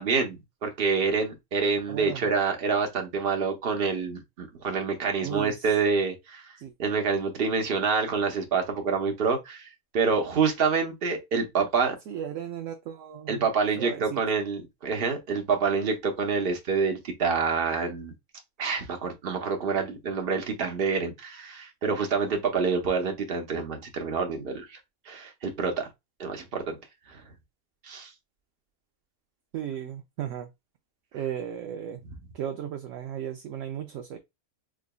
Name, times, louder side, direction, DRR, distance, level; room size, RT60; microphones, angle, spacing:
voice 1, 0.0-9.7 9.9-12.0 13.3-18.1 18.6-24.8 25.1-25.9 26.2-26.8 27.1-27.2 27.8-28.1, right 5 dB, 45° right, 1.0 m, -27 dB
voice 2, 1.9-2.3 5.2-5.7 6.6-6.7 12.1-13.5 13.8-14.2 29.5-30.5 31.1-32.0 32.3-34.2, right 9 dB, 70° right, 0.8 m, -35 dB
4.8 x 2.5 x 2.2 m
omnidirectional pair, 1.5 m